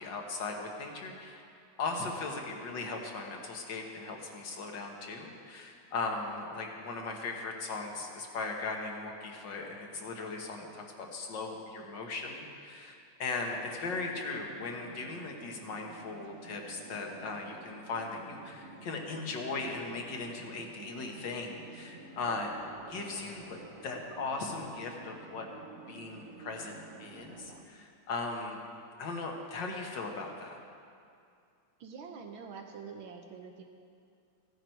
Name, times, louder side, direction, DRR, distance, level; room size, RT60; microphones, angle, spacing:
voice 1, 0.0-1.4 1.8-22.5 22.9-25.5 25.9-28.6 29.0-30.6, left 3 dB, 65° left, 2 dB, 1.9 m, -38 dB
sound 1, 13.8-27.6, right 4 dB, 50° right, 0.8 m, -51 dB
voice 2, 31.8-33.6, right 5 dB, 80° right, 3 dB, 1.6 m, -45 dB
15.5 x 11.0 x 4.6 m, 2.4 s
omnidirectional pair, 2.2 m